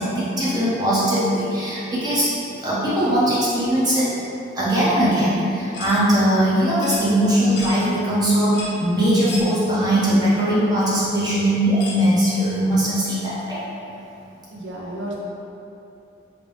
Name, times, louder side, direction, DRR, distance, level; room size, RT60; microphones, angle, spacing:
voice 1, 0.0-2.3 2.6-4.1 4.5-13.6, equal, 20° right, -9 dB, 0.6 m, -20 dB
sound 1, 5.7-6.0 6.8-7.0 7.6-7.8 8.5-8.8 9.3-9.5 10.3-10.4 11.8-12.0, left 2 dB, 70° left, 0.6 m, -33 dB
voice 2, 14.5-15.1, right 1 dB, 80° right, -4 dB, 0.5 m, -32 dB
3.2 x 2.6 x 3.2 m, 2.8 s
head